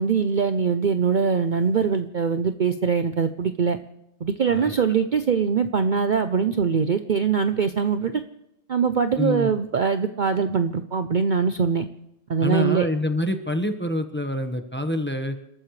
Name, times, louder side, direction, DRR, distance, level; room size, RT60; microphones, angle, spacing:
voice 1, 0.0-3.8 4.2-8.2 8.7-11.8 12.3-12.9, right 6 dB, 45° right, 9 dB, 0.7 m, -22 dB
voice 2, 9.1-9.5 12.4-15.4, left 1 dB, 10° left, 6 dB, 1.1 m, -26 dB
30.0 x 13.5 x 3.2 m, 0.83 s
omnidirectional pair, 1.3 m